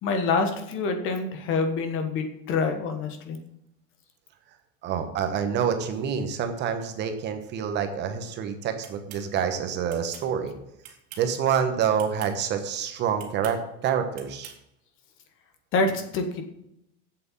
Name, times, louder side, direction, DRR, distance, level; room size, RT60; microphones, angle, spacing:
voice 1, 0.0-3.4 15.7-16.4, left 3 dB, 35° left, 6 dB, 1.4 m, -26 dB
voice 2, 4.8-10.5 11.2-14.5, right 7 dB, 30° right, 7 dB, 1.0 m, -27 dB
sound 1, 8.8-9.2 9.9-10.3 10.8-11.3 11.9-12.3 13.2-13.6 14.1-14.6, right 9 dB, 50° right, 2.4 m, -45 dB
7.9 x 7.6 x 7.3 m, 0.81 s
supercardioid pair, 170°, 35 cm